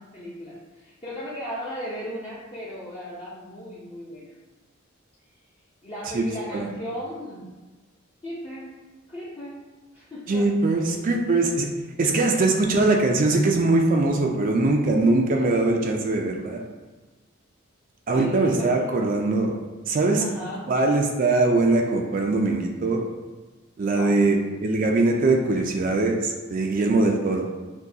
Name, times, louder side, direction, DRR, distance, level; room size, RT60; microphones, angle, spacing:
voice 1, 0.0-4.4 5.8-7.5 8.2-8.7 9.1-9.6 9.9-10.5 12.3-12.6 18.1-18.7 20.2-20.7 23.9-24.2, equal, 25° left, -9 dB, 0.7 m, -36 dB
voice 2, 6.1-6.7 10.3-11.7 12.0-16.6 18.1-19.6 19.9-20.2 20.7-23.1 23.8-27.5, right 2 dB, 45° right, 1 dB, 0.4 m, -22 dB
6.1 x 2.3 x 2.7 m, 1.3 s
head